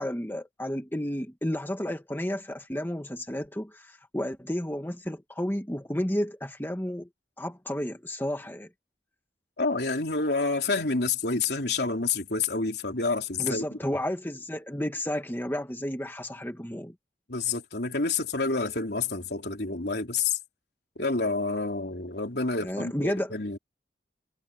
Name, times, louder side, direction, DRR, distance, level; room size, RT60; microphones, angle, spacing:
voice 1, 0.0-7.1 7.4-8.7 13.4-16.9 22.6-23.3, equal, 10° left, 1.7 m, -32 dB
voice 2, 9.6-13.6 17.3-20.4 21.0-23.6, left 3 dB, 65° left, 3.8 m, -28 dB
head